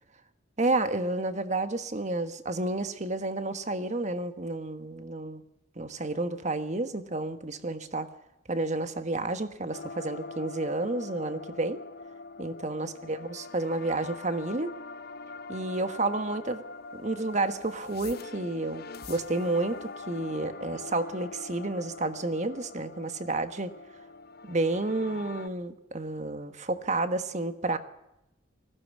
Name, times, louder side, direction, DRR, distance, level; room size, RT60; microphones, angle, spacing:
voice 1, 0.6-5.4 5.8-8.1 8.5-11.8 12.4-14.7 15.5-16.6 16.9-23.7 24.4-27.8, right 2 dB, 35° right, 10 dB, 1.3 m, -30 dB
sound 1, 9.7-25.5, left 3 dB, 50° left, 0.6 m, -43 dB
19.5 x 16.5 x 8.4 m, 0.88 s
head